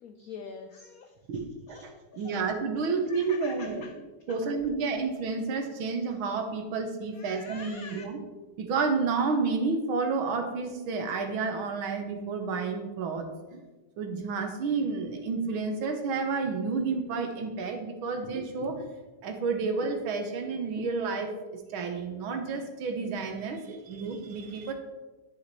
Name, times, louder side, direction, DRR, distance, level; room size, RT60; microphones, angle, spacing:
voice 1, 0.0-1.1 1.7-2.4 3.1-3.9 4.3-4.4 7.1-8.0, left 5 dB, 80° left, 5 dB, 0.8 m, -45 dB
voice 2, 1.3-3.8 4.3-8.2 8.6-13.3 13.5-13.6 14.0-18.9 19.2-24.7, right 4 dB, 80° right, 5 dB, 1.8 m, -30 dB
11.0 x 5.0 x 4.1 m, 1.2 s
omnidirectional pair, 2.2 m